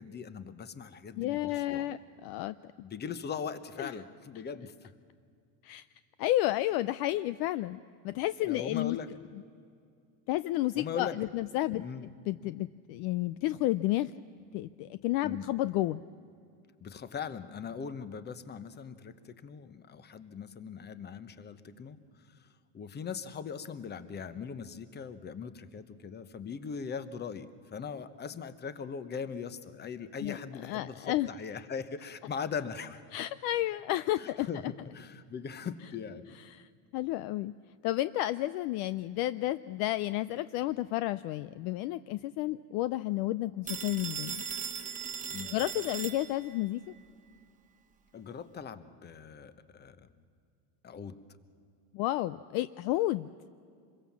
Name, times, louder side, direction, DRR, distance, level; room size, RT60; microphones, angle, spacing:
voice 1, 0.0-1.9 2.8-4.9 8.5-9.1 10.8-11.2 11.7-12.1 15.2-15.5 16.8-22.0 22.4-22.5 22.7-33.0 34.1-36.4 45.3-45.5 48.1-50.1 50.8-51.2, left 6 dB, 20° left, 13 dB, 1.0 m, -40 dB
voice 2, 1.2-2.6 3.8-3.9 5.6-5.9 6.2-9.0 10.3-11.8 12.3-14.1 14.5-16.0 30.2-31.3 33.1-34.7 36.5-37.5 37.8-44.4 45.5-46.8 51.9-53.3, left 15 dB, 55° left, 15 dB, 0.5 m, -31 dB
Telephone, 43.7-46.7, right 6 dB, 15° right, 1.2 m, -38 dB
26.5 x 22.0 x 7.3 m, 2.3 s
supercardioid pair, 140°, 46 cm